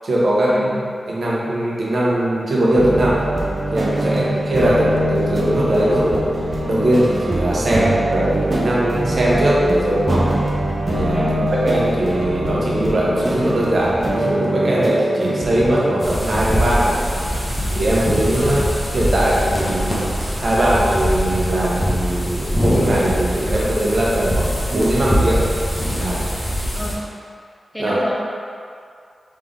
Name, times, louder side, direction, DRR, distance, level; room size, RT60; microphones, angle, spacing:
voice 1, 0.0-0.7 1.1-3.2 3.7-6.2 6.7-10.3 10.9-11.3 11.6-17.1 17.7-20.1 20.4-25.5 25.9-26.2 27.8-28.0, right 1 dB, 60° right, -6 dB, 0.9 m, -20 dB
sound 1, 2.7-16.0, right 1 dB, 35° right, 0.7 m, -23 dB
voice 2, 11.1-11.5 18.4-18.6 26.7-27.0 27.7-28.1, equal, 5° left, -5 dB, 0.8 m, -28 dB
sound 2, 16.0-26.9, equal, 25° left, 1.1 m, -22 dB
3.8 x 3.3 x 3.5 m, 2.3 s
wide cardioid pair, 90°, 0 cm